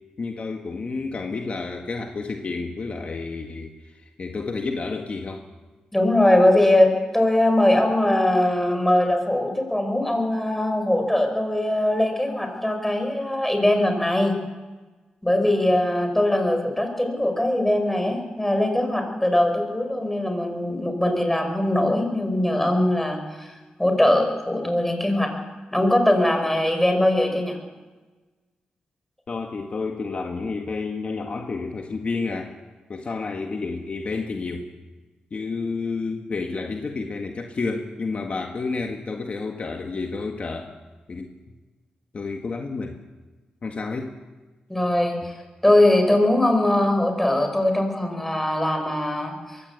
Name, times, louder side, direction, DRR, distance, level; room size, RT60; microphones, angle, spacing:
voice 1, 0.2-5.4 29.3-32.5 32.9-34.7 35.3-40.7 41.1-41.3 42.1-43.0 43.6-44.2, left 4 dB, 45° left, 3 dB, 1.8 m, -30 dB
voice 2, 5.9-14.3 15.2-23.5 23.8-25.3 25.7-27.6 44.7-45.2 45.6-49.6, left 1 dB, 5° left, 4 dB, 5.3 m, -21 dB
22.5 x 16.0 x 8.4 m, 1.3 s
cardioid pair, 90°, 3 cm